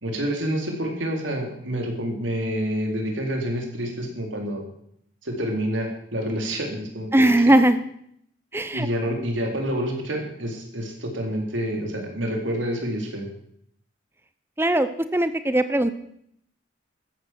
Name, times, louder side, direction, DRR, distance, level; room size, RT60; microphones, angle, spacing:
voice 1, 0.0-4.6 5.2-7.3 8.7-13.3, equal, 90° right, 2 dB, 4.1 m, -28 dB
voice 2, 7.1-7.8 8.5-8.9 14.6-15.9, right 1 dB, 10° right, 11 dB, 0.8 m, -19 dB
13.5 x 10.5 x 7.8 m, 0.70 s
head